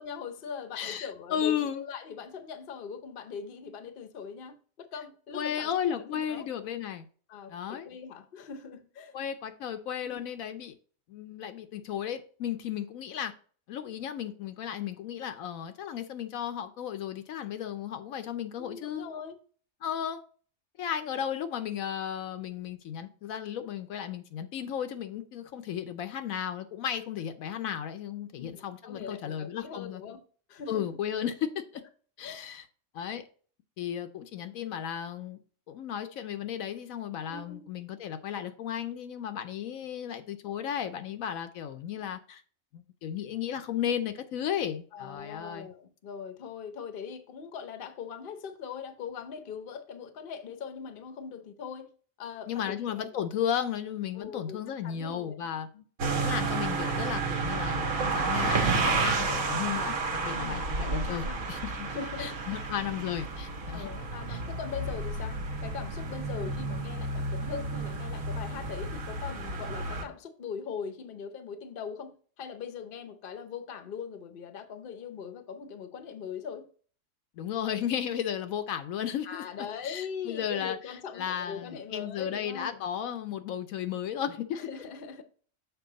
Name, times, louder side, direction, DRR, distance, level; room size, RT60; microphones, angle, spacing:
voice 1, 0.0-6.5 7.3-9.1 10.0-10.2 18.6-19.4 28.4-30.2 30.5-30.9 32.2-32.4 37.3-37.7 44.9-51.9 52.2-53.1 54.1-55.8 60.3-61.5 61.9-62.6 63.7-76.7 79.2-82.9 84.5-85.2, left 6 dB, 45° left, 0.8 m, -41 dB
voice 2, 0.8-1.8 5.3-7.1 7.5-7.9 9.1-10.8 11.1-13.3 13.7-19.0 19.8-20.2 20.8-30.0 30.7-31.8 32.2-32.6 32.9-33.3 33.8-35.4 35.7-42.4 42.7-45.7 52.5-55.7 56.2-61.9 62.2-63.9 64.3-64.4 77.4-79.4 79.8-84.6, left 9 dB, 75° left, 1.0 m, -34 dB
sound 1, 56.0-70.0, right 3 dB, 75° right, 1.5 m, -31 dB
6.9 x 4.7 x 3.9 m
omnidirectional pair, 1.5 m